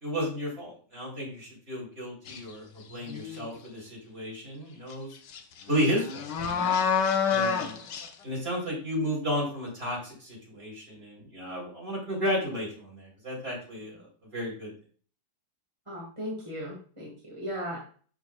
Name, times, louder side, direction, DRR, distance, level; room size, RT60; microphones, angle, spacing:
voice 1, 0.0-5.1 5.7-6.7 7.3-7.8 8.2-14.7, equal, 35° right, -4 dB, 4.0 m, -33 dB
sound 1, 2.3-2.5 3.0-3.6 4.9-5.0 5.3-8.1, left 6 dB, 85° left, 1.5 m, -28 dB
voice 2, 15.9-17.8, equal, 20° right, -3 dB, 1.6 m, -37 dB
11.5 x 4.1 x 2.3 m, 0.43 s
omnidirectional pair, 1.8 m